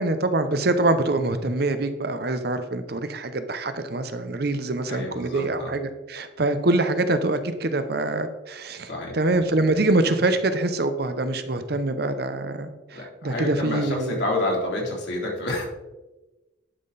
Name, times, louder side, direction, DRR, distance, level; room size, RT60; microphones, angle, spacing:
voice 1, 0.0-14.2, right 2 dB, 55° right, 10 dB, 0.8 m, -25 dB
voice 2, 4.9-5.7 8.9-9.1 12.9-15.6, left 1 dB, 65° left, -3 dB, 3.2 m, -28 dB
11.0 x 5.9 x 4.1 m, 1.1 s
head